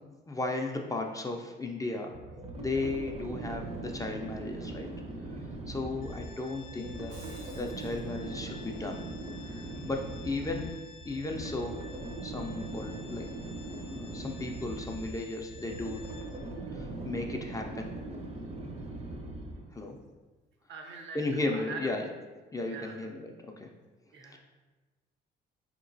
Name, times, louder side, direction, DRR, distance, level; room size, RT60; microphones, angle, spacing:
voice 1, 0.3-2.2 2.5-4.9 5.7-7.2 7.5-9.1 9.4-10.7 11.0-11.8 12.2-13.3 13.9-16.0 16.7-17.9 19.7-20.0 21.1-22.1 22.5-23.7 24.3-24.4, left 2 dB, 15° left, 2 dB, 0.3 m, -35 dB
sound 1, 2.1-19.8, right 2 dB, 35° right, 0.5 m, -40 dB
Organ, 6.0-16.7, left 5 dB, 70° left, 0.6 m, -53 dB
Shatter, 6.9-8.0, right 2 dB, 90° right, 1.0 m, -53 dB
voice 2, 20.7-21.9 22.6-22.9 24.1-24.4, right 4 dB, 65° right, 2 dB, 0.6 m, -43 dB
4.0 x 2.9 x 2.6 m, 1.2 s
cardioid pair, 90°, 20 cm